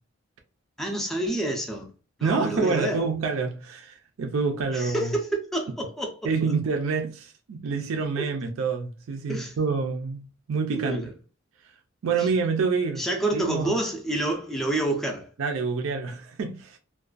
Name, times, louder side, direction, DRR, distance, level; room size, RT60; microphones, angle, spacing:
voice 1, 0.8-1.9 2.2-3.0 4.7-6.2 8.2-8.3 9.3-9.5 10.7-11.1 12.2-12.3 13.0-15.3, right 1 dB, ahead, 0.4 m, -28 dB
voice 2, 2.2-5.1 6.2-10.2 10.5-11.0 12.0-13.0 13.3-13.7 15.4-16.8, right 4 dB, 75° right, 0.4 m, -27 dB
2.4 x 2.2 x 2.3 m
head